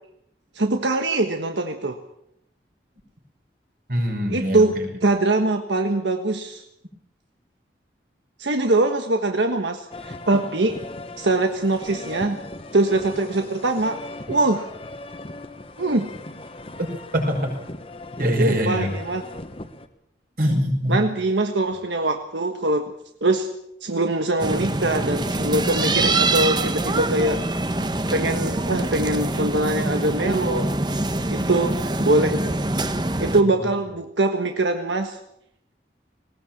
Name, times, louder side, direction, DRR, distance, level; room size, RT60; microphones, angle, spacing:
voice 1, 0.5-2.0 4.3-4.7 5.0-6.6 8.4-10.8 11.2-12.4 12.7-14.0 14.3-14.7 15.8-16.1 18.4-19.2 20.9-22.9 23.2-23.5 23.8-27.4 28.1-30.7 31.3-32.5 33.2-35.2, right 2 dB, 85° right, 5 dB, 1.4 m, -22 dB
voice 2, 3.9-4.8 16.8-16.9 17.1-17.5 18.2-18.9 20.4-21.1 33.4-33.5, equal, 50° right, 2 dB, 5.7 m, -23 dB
sound 1, 9.9-19.9, left 2 dB, 30° left, 1.3 m, -38 dB
sound 2, 24.4-33.4, right 2 dB, 25° right, 1.1 m, -24 dB
19.0 x 18.5 x 7.4 m, 0.77 s
head